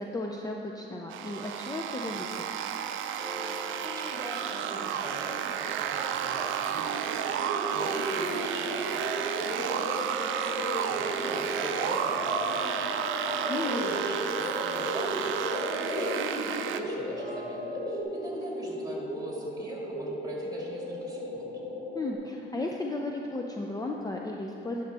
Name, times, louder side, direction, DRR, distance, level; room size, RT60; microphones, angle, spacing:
voice 1, 0.0-2.4 13.5-13.9 21.9-24.8, left 2 dB, 20° left, 0 dB, 0.5 m, -34 dB
sound 1, 1.0-2.4 3.2-18.0, equal, 70° left, 2.0 m, -47 dB
sound 2, 1.1-16.8, right 8 dB, 80° right, 0.4 m, -32 dB
voice 2, 3.8-9.1 9.3-12.7 13.0-15.4 15.7-21.5, right 1 dB, 20° right, -2 dB, 1.8 m, -42 dB
sound 3, 7.0-22.1, equal, 35° left, 1.7 m, -35 dB
10.5 x 6.3 x 3.4 m, 2.7 s
cardioid pair, 90°, 20 cm